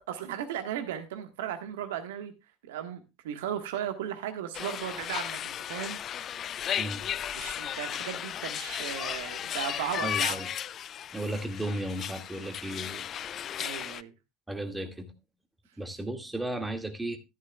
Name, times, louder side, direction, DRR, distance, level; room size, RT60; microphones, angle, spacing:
voice 1, 0.1-2.3 2.7-6.0 7.3-10.4 13.6-14.1, right 10 dB, 70° right, 1.4 m, -36 dB
sound 1, 4.5-14.0, left 10 dB, 40° left, 0.4 m, -35 dB
voice 2, 10.0-10.5 11.1-13.0 14.5-15.1 15.8-17.2, right 1 dB, 10° right, 2.0 m, -34 dB
13.5 x 11.0 x 2.3 m
figure-of-eight pair, 70°, 0 cm